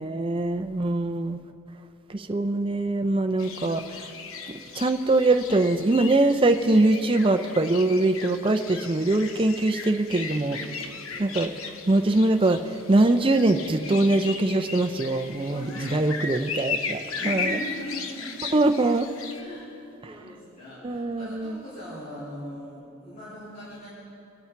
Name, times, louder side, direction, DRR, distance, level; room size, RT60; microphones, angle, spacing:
voice 1, 0.0-1.4 2.1-4.0 4.5-10.6 11.2-11.5 11.9-15.6 15.9-17.6 18.5-19.1 20.8-21.6, right 2 dB, 25° right, 6 dB, 0.5 m, -23 dB
sound 1, 3.4-19.4, left 4 dB, 70° left, 0.9 m, -36 dB
voice 2, 10.4-11.4 15.5-16.1 17.2-18.3 19.3-19.7 20.0-23.9, left 1 dB, 40° left, -11 dB, 3.4 m, -40 dB
23.5 x 8.5 x 4.6 m, 2.8 s
head